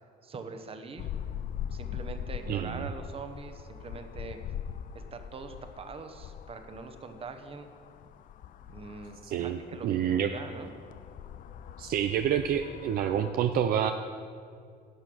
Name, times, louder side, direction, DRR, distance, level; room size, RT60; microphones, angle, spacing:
voice 1, 0.2-1.1 1.7-4.4 4.9-7.7 8.7-10.7, right 4 dB, 35° right, 7 dB, 1.0 m, -43 dB
sound 1, 1.0-13.3, left 9 dB, 55° left, 0.4 m, -42 dB
voice 2, 2.5-2.9 9.2-10.3 11.8-13.9, right 9 dB, 60° right, 7 dB, 0.5 m, -28 dB
11.0 x 6.7 x 6.2 m, 2.3 s
cardioid pair, 110°, 17 cm